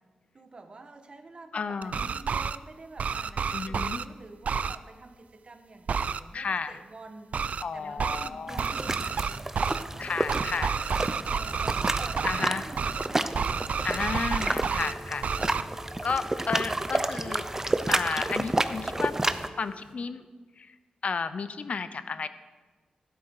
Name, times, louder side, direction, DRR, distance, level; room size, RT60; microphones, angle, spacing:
voice 1, 0.3-7.3 7.7-10.1 11.1-14.3 16.1-16.6, right 3 dB, 40° right, 7 dB, 1.3 m, -48 dB
voice 2, 1.5-2.0 3.5-4.0 6.3-6.8 7.6-8.6 10.0-11.1 12.2-12.7 13.8-15.3 16.0-17.5 17.9-19.2 19.6-20.2 20.6-20.7 21.0-22.3, left 5 dB, 55° left, 13 dB, 0.7 m, -32 dB
sound 1, 1.8-2.6 3.0-4.0 4.4-4.8 5.9-6.2 7.3-7.6 8.0-8.3 8.6-9.8 10.3-12.5 12.8-13.1 13.3-14.9 15.2-15.6, right 6 dB, 60° right, 0.4 m, -30 dB
sound 2, 8.5-19.5, right 2 dB, 15° right, 0.6 m, -31 dB
Telephone, 14.7-19.9, left 2 dB, 25° left, 2.1 m, -49 dB
12.5 x 12.0 x 4.9 m, 1.4 s
wide cardioid pair, 105°, 3 cm